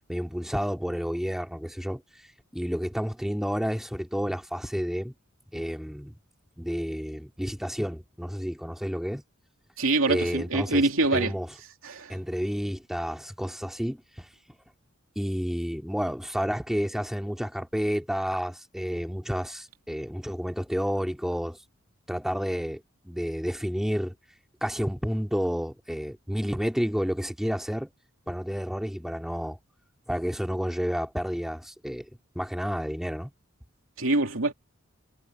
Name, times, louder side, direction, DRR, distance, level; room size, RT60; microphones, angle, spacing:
voice 1, 0.1-2.0 2.5-5.1 5.5-6.1 6.6-9.2 10.1-10.8 11.1-11.5 12.1-14.3 15.2-21.6 22.1-24.1 24.6-27.9 28.3-29.6 30.1-32.1 32.4-33.3, equal, ahead, 2.3 m, -30 dB
voice 2, 9.8-11.3 11.8-12.2 34.0-34.5, right 2 dB, 75° right, 2.8 m, -25 dB
head